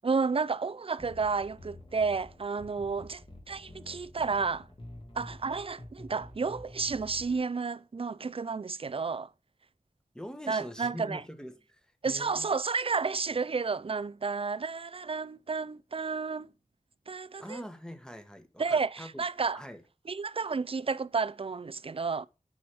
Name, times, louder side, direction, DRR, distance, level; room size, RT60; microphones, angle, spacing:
voice 1, 0.0-4.7 5.1-9.3 10.5-11.2 12.0-16.5 17.1-17.6 18.6-19.6 20.1-22.3, right 4 dB, 40° right, 0.4 m, -31 dB
sound 1, 1.0-7.4, left 1 dB, 40° left, 2.0 m, -49 dB
voice 2, 10.1-12.5 17.4-19.2 19.5-19.8, equal, 5° left, 1.2 m, -43 dB
6.0 x 4.9 x 6.1 m
wide cardioid pair, 45°, 14 cm